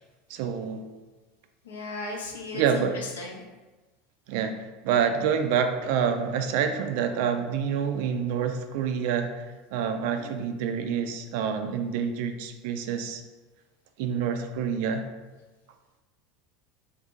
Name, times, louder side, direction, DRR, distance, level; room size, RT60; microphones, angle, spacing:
voice 1, 0.3-0.8 2.5-3.0 4.3-13.2 14.0-15.1, right 7 dB, 55° right, 7 dB, 0.3 m, -27 dB
voice 2, 1.6-3.5 10.1-10.4, left 3 dB, 70° left, 0 dB, 0.6 m, -37 dB
2.7 x 2.6 x 3.5 m, 1.2 s
figure-of-eight pair, 75°, 0 cm